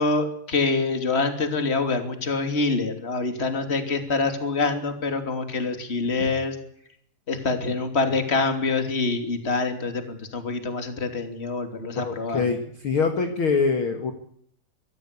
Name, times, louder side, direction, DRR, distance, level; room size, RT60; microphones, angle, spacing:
voice 1, 0.0-6.6 7.3-12.5, left 3 dB, 20° left, 7 dB, 2.7 m, -25 dB
voice 2, 12.0-14.1, left 5 dB, 45° left, 6 dB, 2.2 m, -24 dB
24.0 x 16.0 x 8.4 m, 0.68 s
omnidirectional pair, 4.1 m